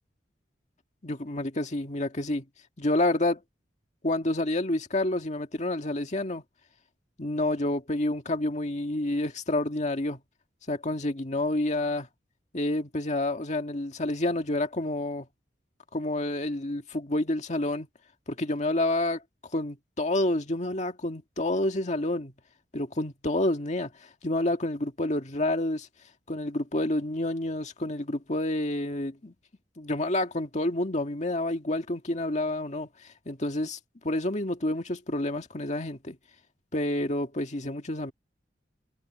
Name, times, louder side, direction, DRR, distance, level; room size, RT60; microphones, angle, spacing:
voice 1, 1.0-2.4 2.8-3.4 4.0-6.4 7.2-10.2 10.7-12.1 12.5-15.3 15.9-17.9 18.4-19.2 19.5-22.3 22.7-23.9 24.2-25.9 26.3-29.3 29.8-32.9 33.3-33.8 34.0-36.2 36.7-38.1, left 1 dB, 40° left, 1.9 m, -29 dB
head